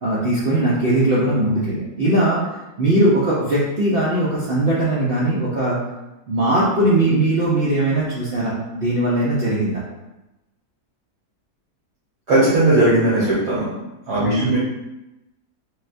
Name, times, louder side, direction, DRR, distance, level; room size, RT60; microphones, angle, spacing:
voice 1, 0.0-2.4 2.8-5.8 6.3-9.8 14.2-14.5, right 1 dB, 65° right, -8 dB, 0.5 m, -19 dB
voice 2, 12.3-13.7 14.1-14.6, right 2 dB, 80° right, -10 dB, 1.5 m, -17 dB
4.1 x 2.1 x 2.5 m, 0.99 s
omnidirectional pair, 1.7 m